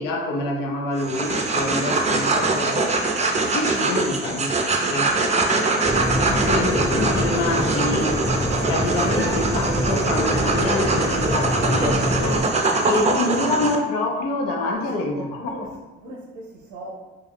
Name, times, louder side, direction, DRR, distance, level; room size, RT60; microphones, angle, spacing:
voice 1, 0.0-3.0 3.5-5.3 5.9-8.2 8.6-12.5 12.8-15.5, left 2 dB, 85° left, 1 dB, 0.6 m, -27 dB
sound 1, 1.0-13.8, right 3 dB, 20° right, 0.4 m, -23 dB
sound 2, 5.8-12.4, equal, 15° left, 0.8 m, -24 dB
voice 2, 14.7-16.9, right 2 dB, 90° right, -3 dB, 0.5 m, -38 dB
2.3 x 2.2 x 3.3 m, 1.1 s
supercardioid pair, 55°, 31 cm